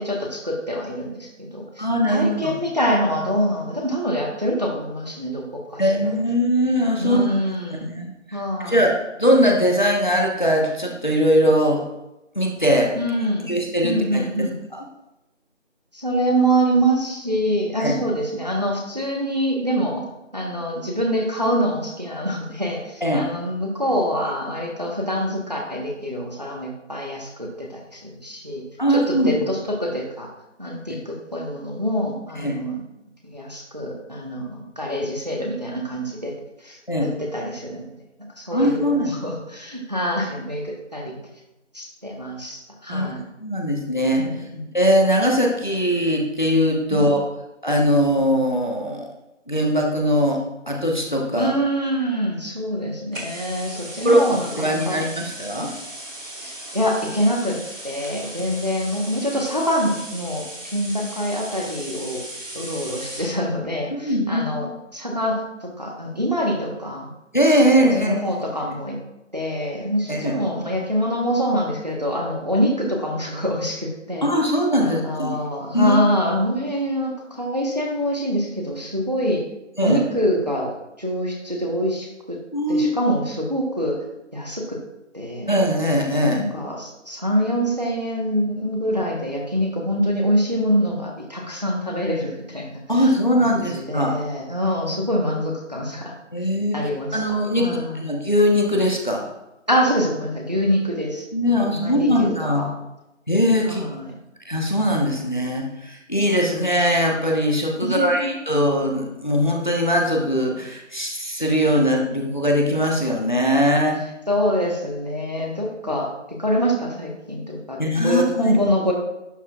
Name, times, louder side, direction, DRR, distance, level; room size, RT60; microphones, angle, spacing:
voice 1, 0.0-5.9 7.0-7.9 8.3-8.8 12.9-13.5 13.8-14.5 15.9-20.0 20.3-28.6 28.9-30.3 30.6-32.8 33.2-36.3 36.6-37.9 38.4-41.2 41.7-43.3 44.2-44.7 46.9-47.1 51.4-55.0 56.4-62.2 62.5-67.1 68.0-69.0 69.3-74.3 74.8-79.4 79.8-82.4 82.7-84.0 84.3-84.8 85.1-85.5 86.2-92.7 93.4-96.1 96.7-98.0 99.7-101.3 101.7-102.7 103.7-104.2 107.8-108.4 114.3-118.9, equal, 35° right, 0 dB, 1.3 m, -25 dB
voice 2, 1.8-2.5 5.8-7.3 7.8-11.8 12.3-12.9 13.5-14.2 17.8-17.9 23.0-23.2 28.8-29.4 30.9-31.0 32.4-32.6 36.9-37.1 38.5-39.2 42.9-43.1 43.4-44.5 44.7-47.2 47.6-49.1 49.5-51.5 54.0-55.7 63.9-64.7 67.3-68.2 70.1-70.3 74.2-75.4 75.7-76.0 79.8-80.0 82.5-82.9 85.5-86.4 92.9-94.2 96.3-96.8 97.1-99.3 101.3-102.7 103.3-103.8 104.4-114.0 115.9-116.0 117.8-118.5, equal, 40° left, 0 dB, 1.2 m, -21 dB
sound 1, 53.1-63.4, right 1 dB, 90° right, 2.4 m, -37 dB
11.5 x 7.9 x 2.4 m, 0.93 s
figure-of-eight pair, 180°, 38 cm